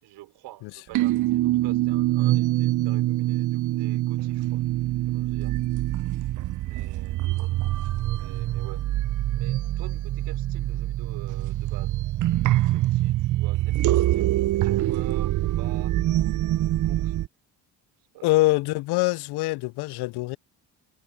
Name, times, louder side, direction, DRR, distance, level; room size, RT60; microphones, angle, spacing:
voice 1, 0.0-4.6 5.0-5.6 6.6-7.5 8.1-8.8 9.3-12.0 12.4-15.9 16.5-17.2 18.1-18.3, right 16 dB, 80° right, 5.0 m, -47 dB
sound 1, 0.9-17.3, right 15 dB, 50° right, 0.5 m, -25 dB
voice 2, 18.2-20.4, left 20 dB, 75° left, 0.5 m, -24 dB
supercardioid pair, 80°, 40 cm